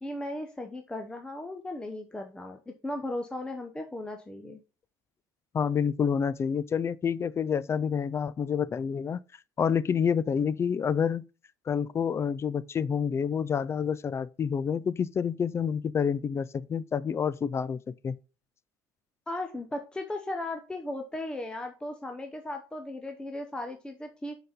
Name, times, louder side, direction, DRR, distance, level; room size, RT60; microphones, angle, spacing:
voice 1, 0.0-4.6 19.3-24.4, left 1 dB, 10° left, 0.8 m, -36 dB
voice 2, 5.5-9.2 9.6-11.2 11.7-18.2, left 7 dB, 30° left, 0.4 m, -28 dB
6.6 x 4.0 x 5.1 m
supercardioid pair, 100°, 9 cm